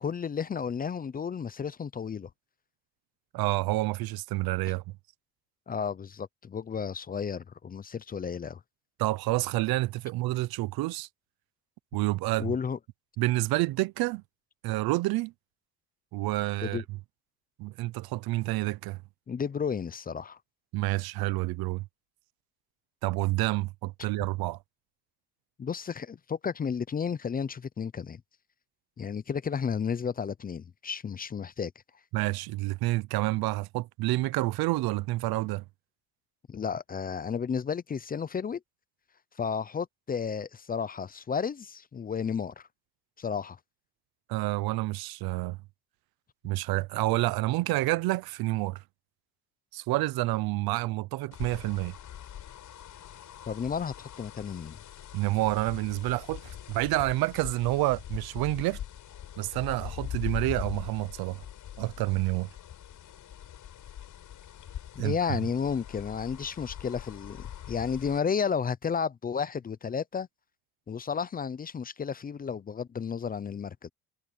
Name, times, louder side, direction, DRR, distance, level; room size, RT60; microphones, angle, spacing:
voice 1, 0.0-2.3 5.7-8.6 12.4-12.8 16.6-16.8 19.3-20.4 25.6-28.2 29.0-31.7 36.5-38.6 39.4-42.6 43.2-43.6 53.5-54.8 64.9-70.3 70.9-73.9, left 6 dB, 25° left, 0.6 m, -32 dB
voice 2, 3.3-4.8 9.0-11.1 11.9-12.6 13.2-14.2 14.6-15.3 16.1-16.8 17.6-19.0 20.7-21.8 23.0-24.6 32.1-35.6 44.3-45.6 46.4-48.8 49.7-51.9 55.1-58.8 59.4-61.4 61.8-62.5 65.0-65.4, right 19 dB, 80° right, 0.8 m, -28 dB
sound 1, 51.3-68.2, left 10 dB, 55° left, 6.7 m, -42 dB
cardioid pair, 125°, 36 cm